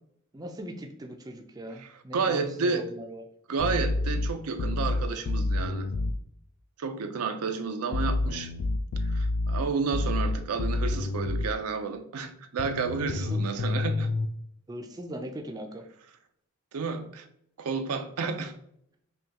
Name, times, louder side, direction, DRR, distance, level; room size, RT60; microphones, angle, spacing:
voice 1, 0.3-3.2 13.1-13.4 14.7-15.8, right 1 dB, 15° right, 0.4 m, -40 dB
voice 2, 1.8-2.9 3.5-5.9 6.8-8.5 9.0-14.1 16.7-17.3 17.6-18.5, right 5 dB, 85° right, 0.5 m, -31 dB
sound 1, 3.6-6.2 7.9-11.5 12.6-14.3, left 2 dB, 75° left, 0.3 m, -28 dB
5.4 x 2.3 x 2.8 m
head